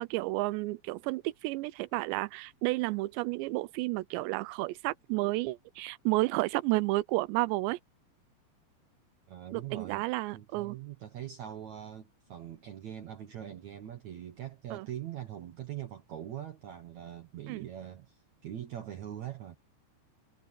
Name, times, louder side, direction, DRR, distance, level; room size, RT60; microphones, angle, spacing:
voice 1, 0.0-7.8 9.5-10.8 14.7-14.9 17.5-17.7, right 21 dB, 90° right, 2.9 m, -31 dB
voice 2, 9.3-19.6, right 11 dB, 65° right, 1.8 m, -42 dB
omnidirectional pair, 5.0 m